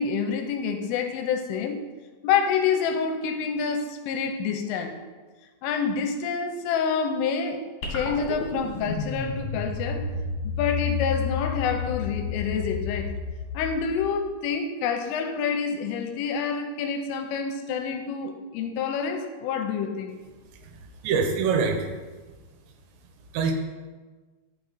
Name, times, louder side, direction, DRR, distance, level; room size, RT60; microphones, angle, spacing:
voice 1, 0.0-1.8 2.2-4.9 5.6-7.6 7.9-10.1 10.4-13.1 13.5-20.1, left 6 dB, 85° left, 6 dB, 3.1 m, -27 dB
sound 1, 7.8-14.3, left 6 dB, 50° left, 2.3 m, -31 dB
voice 2, 20.5-21.9 23.3-23.5, right 5 dB, 85° right, 4 dB, 3.6 m, -25 dB
11.5 x 6.0 x 4.1 m, 1.3 s
omnidirectional pair, 5.9 m